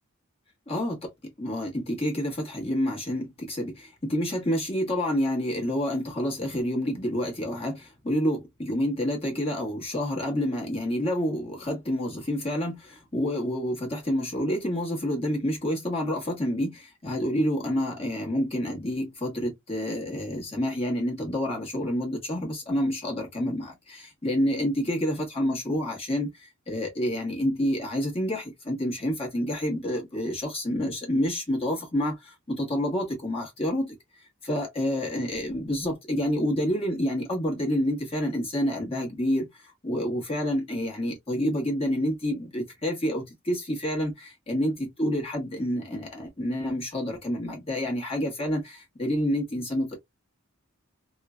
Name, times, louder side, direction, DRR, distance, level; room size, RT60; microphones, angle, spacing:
voice 1, 0.7-33.9 34.4-50.0, equal, 30° left, 1.2 m, -28 dB
3.1 x 2.1 x 2.2 m
head